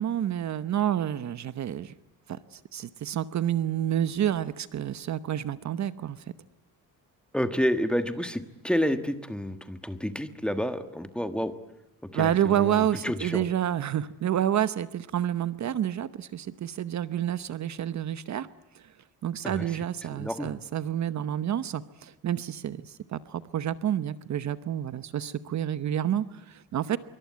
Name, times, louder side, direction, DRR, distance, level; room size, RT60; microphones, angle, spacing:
voice 1, 0.0-1.9 2.3-6.2 12.1-18.5 18.7-18.9 19.2-27.0, right 10 dB, 50° right, 14 dB, 0.9 m, -29 dB
voice 2, 7.3-11.5 12.1-13.4 19.4-19.7 20.2-20.5, equal, 5° left, 9 dB, 1.5 m, -29 dB
26.0 x 23.5 x 9.5 m, 0.87 s
cardioid pair, 175°, 36 cm